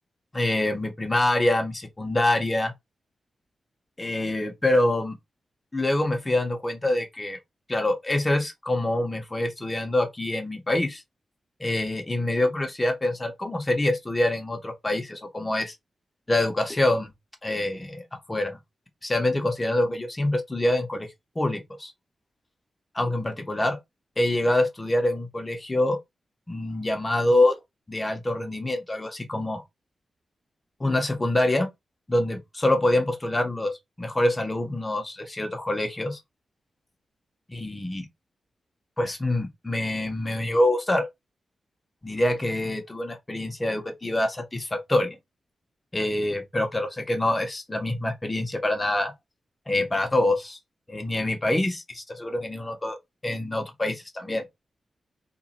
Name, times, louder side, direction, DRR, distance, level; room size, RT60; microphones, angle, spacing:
voice 1, 0.3-2.7 4.0-5.1 5.7-7.4 7.7-11.0 11.6-15.7 16.3-17.1 17.4-18.0 18.3-18.6 19.0-21.1 21.4-21.9 22.9-23.8 24.2-26.0 26.5-27.6 27.9-29.6 30.8-31.7 32.1-33.7 34.0-36.2 37.5-38.1 39.0-41.1 42.0-45.2 45.9-49.1 49.7-50.6 50.9-53.0 53.2-54.5, left 1 dB, 15° left, 0.6 m, -25 dB
2.9 x 2.1 x 4.0 m
wide cardioid pair, 170°, 0 cm